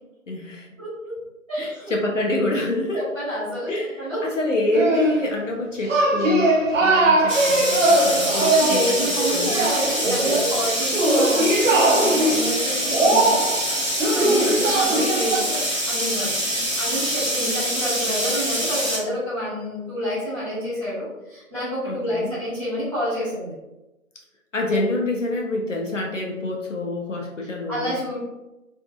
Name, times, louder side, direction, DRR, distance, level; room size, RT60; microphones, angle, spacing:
voice 1, 0.3-0.7 1.6-3.0 3.7-6.5 6.8-8.8 9.3-9.5 10.0-10.4 21.9-22.3 24.5-27.9, left 1 dB, 60° left, 0 dB, 0.6 m, -27 dB
voice 2, 0.8-1.2 1.5-1.9 2.9-4.2 8.4-13.4 14.1-23.5 27.7-28.2, equal, 10° right, -18 dB, 1.2 m, -29 dB
sound 1, 4.7-5.4 5.9-15.4, right 1 dB, 65° right, 0.6 m, -20 dB
sound 2, 7.3-19.0, equal, 10° left, 1.1 m, -25 dB
2.6 x 2.5 x 2.3 m, 0.98 s
figure-of-eight pair, 160°, 41 cm